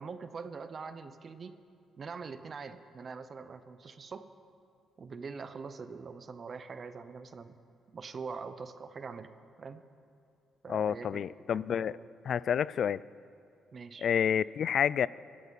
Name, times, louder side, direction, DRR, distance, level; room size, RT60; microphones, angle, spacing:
voice 1, 0.0-1.6 2.0-4.3 5.0-7.5 7.9-9.3 9.6-9.8 10.6-11.2 11.5-12.1 13.7-14.1, right 5 dB, 45° right, 11 dB, 0.8 m, -43 dB
voice 2, 10.7-12.0 12.3-13.0 14.0-15.1, left 8 dB, 60° left, 20 dB, 0.3 m, -29 dB
22.5 x 12.5 x 4.1 m, 2.5 s
cardioid pair, 90°, 0 cm